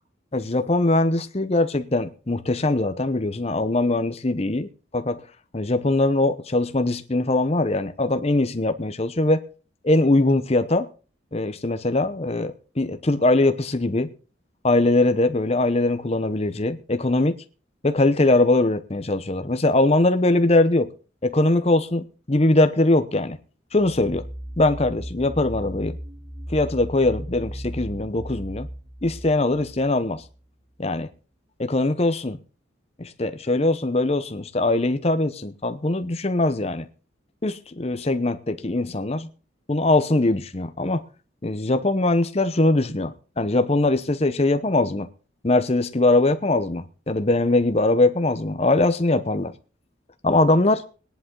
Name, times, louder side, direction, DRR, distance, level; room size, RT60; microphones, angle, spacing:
voice 1, 0.3-5.2 5.5-9.4 9.8-10.9 11.3-14.1 14.6-17.3 17.8-20.9 21.2-23.4 23.7-24.2 24.6-26.0 26.5-28.7 29.0-30.2 30.8-31.1 31.6-32.4 33.0-36.9 37.4-39.3 39.7-41.0 41.4-45.1 45.4-49.5 50.2-50.8, left 2 dB, 30° left, 0.8 m, -21 dB
sound 1, 23.7-30.4, equal, 30° right, 7.6 m, -36 dB
18.0 x 10.5 x 3.8 m
head